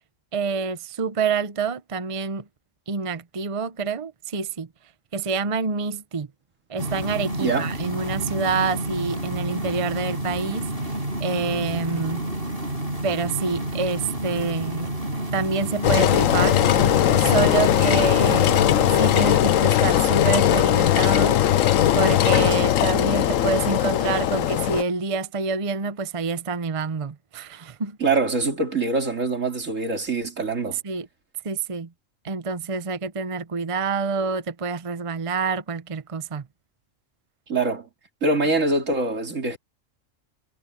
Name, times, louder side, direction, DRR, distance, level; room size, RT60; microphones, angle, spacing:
voice 1, 0.3-2.4 2.9-4.7 5.1-6.3 6.7-10.9 11.2-12.2 13.0-14.9 15.3-16.6 17.2-18.5 18.9-21.4 21.9-28.0 30.8-31.1 31.4-31.9 32.2-36.4, right 4 dB, 30° right, 0.8 m, -27 dB
sound 1, 6.8-19.2, right 1 dB, 45° right, 6.1 m, -29 dB
voice 2, 7.4-7.7 28.0-30.8 37.5-37.9 38.2-39.6, right 3 dB, 75° right, 3.0 m, -24 dB
Engine, 15.8-24.8, left 11 dB, 85° left, 1.1 m, -19 dB
omnidirectional pair, 1.3 m